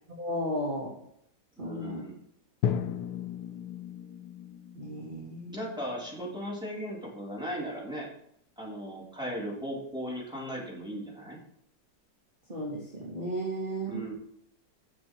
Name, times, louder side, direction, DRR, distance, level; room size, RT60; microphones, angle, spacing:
voice 1, 0.2-0.9 1.6-2.0 4.7-5.6 12.5-14.0, equal, 30° right, -4 dB, 2.1 m, -34 dB
voice 2, 1.6-2.2 5.5-8.1 8.6-11.4 13.9-14.1, equal, ahead, -4 dB, 3.6 m, -37 dB
Drum, 2.6-6.6, left 9 dB, 70° left, 1.2 m, -35 dB
10.5 x 6.7 x 4.6 m, 0.72 s
omnidirectional pair, 1.9 m